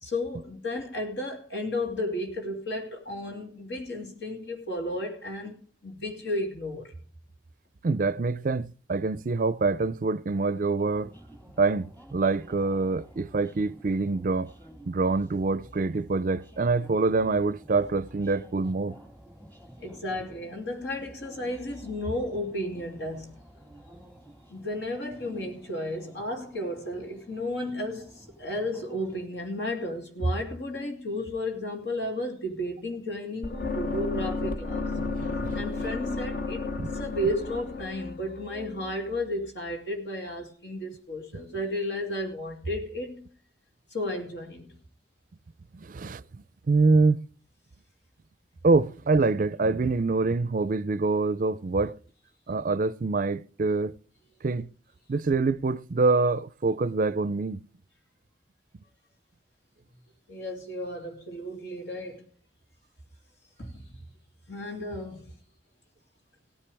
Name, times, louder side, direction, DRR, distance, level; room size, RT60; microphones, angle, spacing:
voice 1, 0.0-6.9 19.8-23.3 24.5-34.8 35.5-36.6 36.9-43.3 43.9-44.7 60.3-62.2 63.6-64.0 64.5-65.3, left 1 dB, 75° left, 2.8 m, -33 dB
voice 2, 7.8-11.1 11.6-14.5 14.9-19.0 35.0-35.1 35.4-35.5 36.8-36.9 45.7-47.2 48.6-51.9 52.5-53.9 54.4-54.7 55.1-57.6, right 3 dB, 45° right, 0.4 m, -25 dB
sound 1, 10.8-29.2, right 1 dB, 10° left, 2.1 m, -51 dB
sound 2, 33.4-39.5, left 3 dB, 50° left, 0.9 m, -33 dB
17.0 x 10.0 x 3.4 m
head